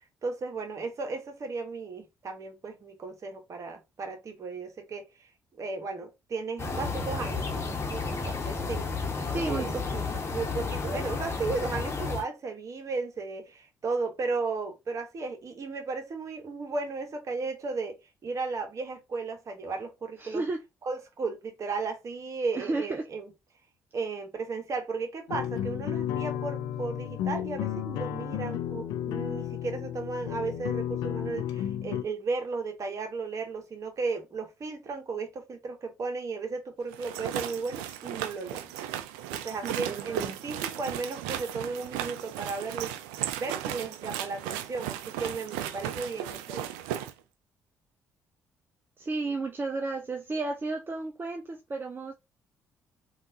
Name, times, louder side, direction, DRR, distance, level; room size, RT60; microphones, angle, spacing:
voice 1, 0.2-5.1 5.6-7.6 7.9-8.9 9.3-9.8 10.3-18.0 18.2-20.4 20.9-23.3 23.9-38.7 39.3-43.0 43.4-46.7, right 4 dB, 45° right, 1.1 m, -35 dB
sound 1, 6.6-12.2, left 4 dB, 40° left, 1.0 m, -32 dB
voice 2, 9.3-10.3 20.2-20.6 22.5-23.0 39.6-40.4 49.0-52.1, right 3 dB, 30° right, 0.6 m, -33 dB
sound 2, 25.3-32.0, left 10 dB, 75° left, 0.4 m, -33 dB
sound 3, 36.9-47.1, right 11 dB, 80° right, 0.4 m, -35 dB
3.5 x 2.5 x 2.7 m
hypercardioid pair, 50°, 7 cm